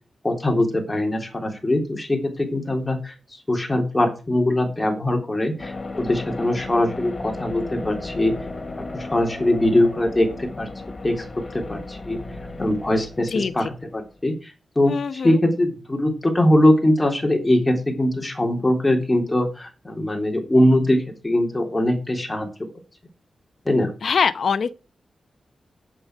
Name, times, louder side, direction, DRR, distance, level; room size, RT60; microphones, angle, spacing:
voice 1, 0.2-3.1 3.5-8.3 8.8-10.7 11.0-11.2 11.5-12.2 12.6-22.5 23.7-23.9, left 1 dB, 15° left, 3.6 m, -21 dB
sound 1, 5.6-14.2, left 2 dB, 35° left, 2.6 m, -35 dB
voice 2, 13.3-13.7 14.8-15.4 24.0-24.8, left 6 dB, 70° left, 0.8 m, -23 dB
8.9 x 8.7 x 6.3 m
wide cardioid pair, 100°, 0 cm